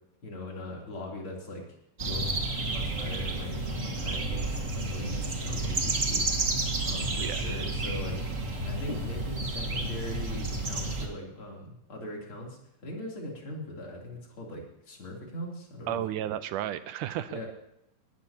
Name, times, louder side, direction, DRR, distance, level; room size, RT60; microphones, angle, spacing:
voice 1, 0.2-1.6 2.0-8.2 8.6-16.2 17.3-17.5, left 1 dB, 40° left, -1 dB, 3.7 m, -41 dB
sound 1, 2.0-11.1, right 2 dB, 35° right, 1.3 m, -31 dB
voice 2, 15.9-17.5, right 12 dB, 80° right, 13 dB, 2.0 m, -33 dB
19.5 x 14.0 x 2.9 m, 0.80 s
omnidirectional pair, 3.9 m